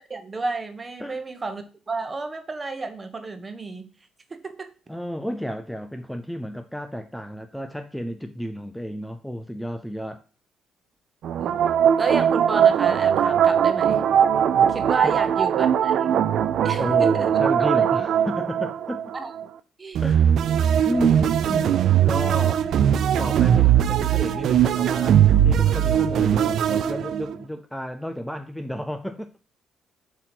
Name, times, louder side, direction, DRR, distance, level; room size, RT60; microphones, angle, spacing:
voice 1, 0.1-3.9 4.3-4.7 11.4-11.6 12.0-14.0 14.7-16.2 16.6-17.4 19.1-19.3 19.8-20.0, right 3 dB, 25° right, 1.0 m, -31 dB
voice 2, 4.9-10.2 15.0-15.2 16.8-19.1 20.0-20.5 20.8-21.7 22.0-22.7 23.2-29.3, equal, ahead, 0.4 m, -32 dB
sound 1, 11.2-19.4 19.9-27.4, right 9 dB, 65° right, 0.4 m, -20 dB
6.9 x 3.1 x 5.8 m
cardioid pair, 110°, 0 cm